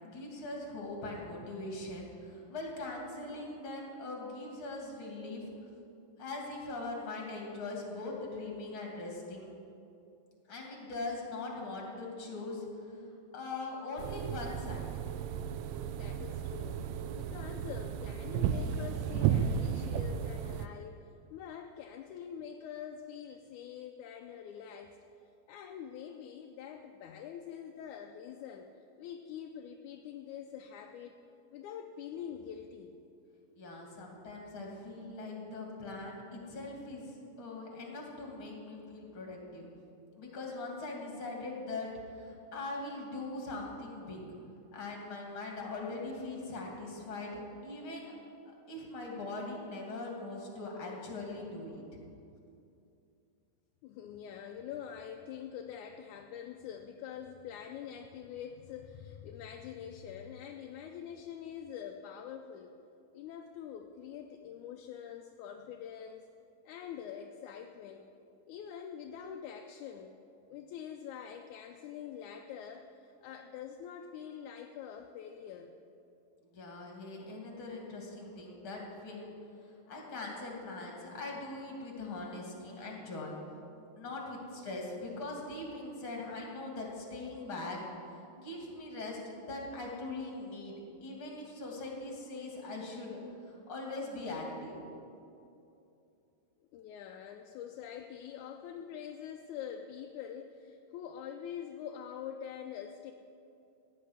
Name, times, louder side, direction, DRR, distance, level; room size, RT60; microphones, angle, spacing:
voice 1, 0.0-5.5 6.2-9.5 10.5-13.0 13.3-15.1 33.6-39.7 40.1-44.2 44.7-48.1 48.5-51.8 76.4-79.3 79.6-83.4 84.0-87.8 88.1-93.2 93.4-94.8, left 2 dB, 40° left, -1 dB, 3.3 m, -41 dB
sound 1, 14.0-20.7, right 8 dB, 90° right, 2.2 m, -34 dB
voice 2, 15.7-25.0 25.5-28.7 29.0-31.2 31.5-33.0 53.8-62.8 63.1-66.3 66.6-68.1 68.5-70.2 70.5-75.7 96.7-103.1, left 8 dB, 80° left, 4 dB, 1.9 m, -45 dB
16.0 x 6.5 x 9.8 m, 2.6 s
omnidirectional pair, 3.7 m